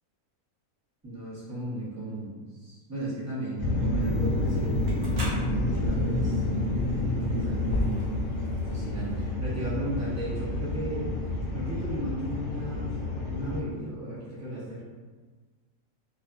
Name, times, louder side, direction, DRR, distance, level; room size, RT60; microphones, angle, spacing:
voice 1, 1.0-6.4 7.4-8.1 8.5-11.1 11.5-13.0 13.3-14.8, right 1 dB, 25° right, -9 dB, 0.3 m, -36 dB
sound 1, 3.6-13.6, left 1 dB, 70° left, 0.9 m, -29 dB
sound 2, 4.0-9.3, left 1 dB, 55° right, 0.7 m, -37 dB
2.6 x 2.5 x 2.3 m, 1.4 s
omnidirectional pair, 1.6 m